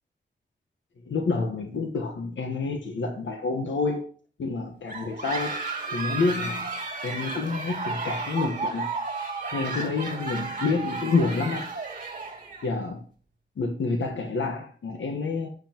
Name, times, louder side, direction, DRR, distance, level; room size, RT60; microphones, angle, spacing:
voice 1, 1.0-4.1 4.4-6.7 7.0-8.9 9.5-11.7 12.6-13.0 13.6-15.5, left 4 dB, 80° left, 1.4 m, -28 dB
sound 1, 4.9-12.7, right 3 dB, 45° right, 2.5 m, -33 dB
13.5 x 9.6 x 3.0 m
wide cardioid pair, 130°, 19 cm